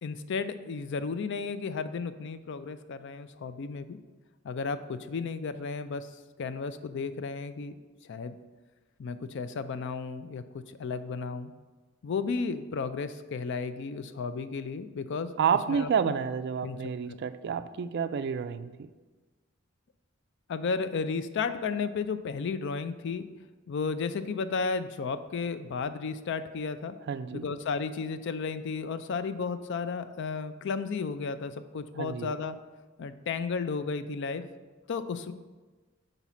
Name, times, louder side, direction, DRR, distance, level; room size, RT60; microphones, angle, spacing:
voice 1, 0.0-4.0 4.4-6.1 6.4-7.7 8.1-8.4 9.0-10.4 10.8-11.5 12.0-15.3 15.7-16.1 16.6-17.2 20.5-23.3 23.7-27.0 27.3-32.6 33.0-34.4 34.9-35.3, left 5 dB, 60° left, 12 dB, 0.4 m, -33 dB
voice 2, 15.4-18.9 27.1-27.4 32.0-32.3, right 7 dB, 55° right, 12 dB, 0.3 m, -29 dB
5.7 x 4.0 x 6.1 m, 1.3 s
head